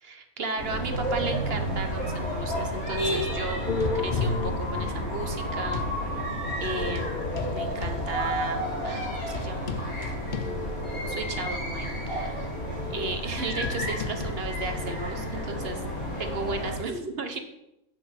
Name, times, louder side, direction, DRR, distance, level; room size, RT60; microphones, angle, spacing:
voice 1, 0.0-3.7 3.9-5.9 6.6-7.2 7.5-9.9 10.9-12.4 12.9-15.8 16.2-17.4, right 3 dB, 45° right, 7 dB, 1.3 m, -35 dB
sound 1, 0.6-16.8, equal, 75° left, 4.3 m, -31 dB
sound 2, 3.7-6.0 6.7-11.1 11.5-11.6 12.2-15.8, left 4 dB, 45° left, 0.7 m, -34 dB
8.7 x 6.1 x 7.9 m, 0.83 s
omnidirectional pair, 1.5 m